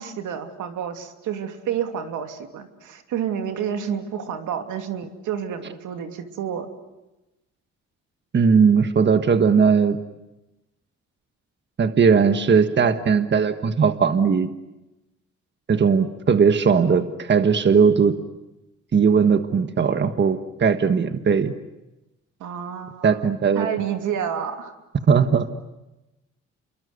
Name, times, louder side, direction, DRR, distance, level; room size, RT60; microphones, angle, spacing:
voice 1, 0.0-6.7 22.4-23.2 23.5-24.7, right 8 dB, 80° right, 5 dB, 2.8 m, -29 dB
voice 2, 8.3-10.0 11.8-14.5 15.7-18.2 18.9-21.5 23.0-23.7 25.1-25.5, right 6 dB, 35° right, 9 dB, 1.5 m, -18 dB
28.5 x 23.5 x 8.1 m, 1.0 s
cardioid pair, 90°, 30 cm